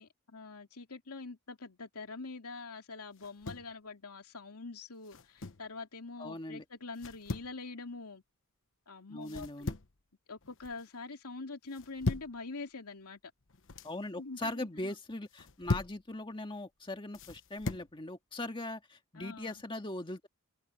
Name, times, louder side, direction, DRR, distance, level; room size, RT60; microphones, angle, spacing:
voice 1, 0.0-8.2 8.9-9.5 10.3-13.2 14.2-14.9 19.1-19.6, left 3 dB, 85° left, 2.7 m, -45 dB
sound 1, 3.2-3.7 5.0-5.7 7.0-7.5 9.2-10.0 10.4-10.9 11.7-12.4 13.4-13.9 15.3-16.0 17.1-17.9, left 3 dB, 60° left, 1.1 m, -38 dB
voice 2, 6.2-6.7 9.1-9.7 13.8-20.3, left 2 dB, 20° left, 1.9 m, -40 dB
head